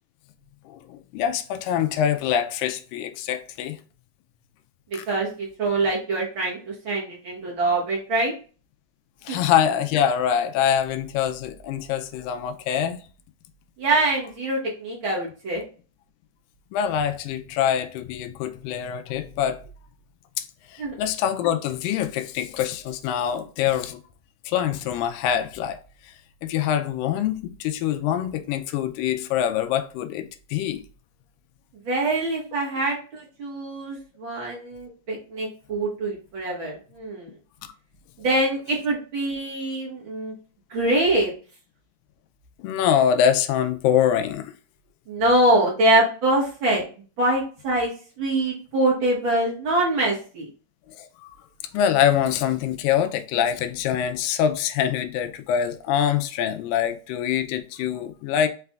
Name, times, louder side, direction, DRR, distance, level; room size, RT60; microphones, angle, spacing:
voice 1, 0.7-3.8 4.9-5.0 9.2-13.0 16.7-19.6 20.4-20.5 20.7-24.0 24.5-25.8 26.0-26.1 26.4-30.8 42.6-44.5 50.9-51.3 51.7-58.5, left 9 dB, 90° left, 2.3 m, -24 dB
voice 2, 5.1-8.3 9.3-9.4 13.8-15.6 20.8-21.0 31.8-37.3 38.2-40.3 40.7-41.3 45.1-46.8 47.2-47.9 48.2-50.5, right 1 dB, 50° right, 1.7 m, -24 dB
5.8 x 3.4 x 2.3 m
omnidirectional pair, 3.8 m